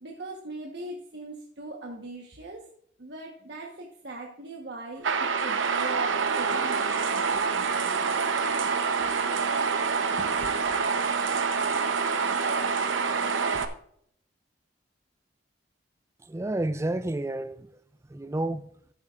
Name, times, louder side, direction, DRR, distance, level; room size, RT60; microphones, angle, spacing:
voice 1, 0.0-2.6 3.0-8.2 10.2-10.3, right 2 dB, 60° right, 1.2 m, -40 dB
sound 1, 5.0-13.6, right 5 dB, 85° right, 0.8 m, -26 dB
voice 2, 16.2-17.7 18.1-18.7, right 1 dB, 15° right, 0.4 m, -30 dB
14.0 x 8.3 x 2.5 m
head